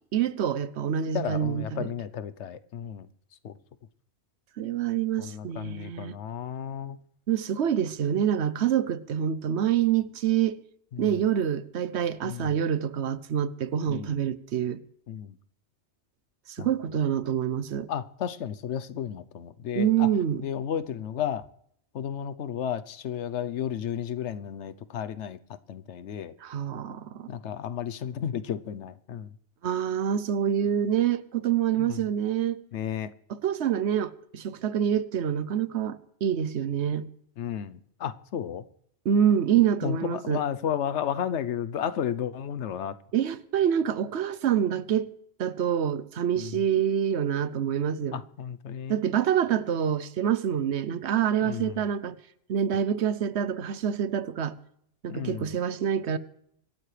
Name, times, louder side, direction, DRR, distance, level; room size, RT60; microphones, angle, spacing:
voice 1, 0.1-1.9 4.6-6.2 7.3-10.6 11.0-14.8 16.5-17.9 19.8-20.4 26.4-27.3 29.6-32.6 33.3-37.1 39.0-40.4 43.1-45.1 45.4-48.2 48.9-52.2 52.5-54.6 55.0-56.2, right 9 dB, 75° right, 1.0 m, -26 dB
voice 2, 1.1-3.1 3.4-3.5 5.2-7.0 10.9-11.2 12.2-12.6 13.9-14.2 15.1-15.4 16.6-17.0 17.9-20.1 20.4-21.4 21.9-26.3 27.3-29.3 31.8-32.0 32.7-33.1 37.4-38.6 39.8-43.0 46.4-46.6 48.1-49.0 51.4-51.9 55.1-55.5, left 9 dB, 85° left, 1.0 m, -33 dB
25.0 x 12.5 x 3.3 m
omnidirectional pair, 1.1 m